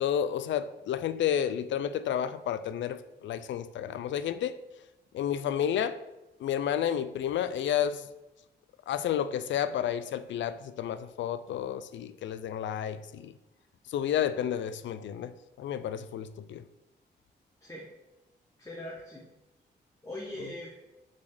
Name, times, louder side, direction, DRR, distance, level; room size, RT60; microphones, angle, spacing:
voice 1, 0.0-4.6 5.1-6.0 6.4-8.1 8.9-13.3 13.9-16.6, left 9 dB, 90° left, 0.4 m, -31 dB
voice 2, 18.6-19.3 20.0-20.7, left 1 dB, 15° left, 1.2 m, -41 dB
6.0 x 4.1 x 6.2 m
cardioid pair, 90°, 19 cm